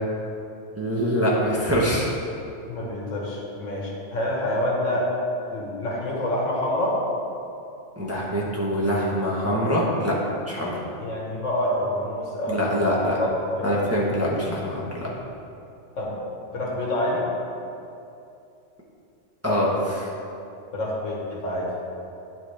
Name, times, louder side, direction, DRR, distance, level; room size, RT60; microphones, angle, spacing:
voice 1, 0.8-2.1 8.0-10.1 10.5-10.8 12.5-13.1 13.6-15.0 19.4-20.1, equal, 15° right, -6 dB, 0.8 m, -24 dB
voice 2, 2.7-5.1 5.5-7.0 11.0-13.7 16.0-16.1 16.5-17.2 20.7-21.7, left 1 dB, 85° left, -4 dB, 1.7 m, -27 dB
10.5 x 3.8 x 3.2 m, 2.7 s
omnidirectional pair, 1.3 m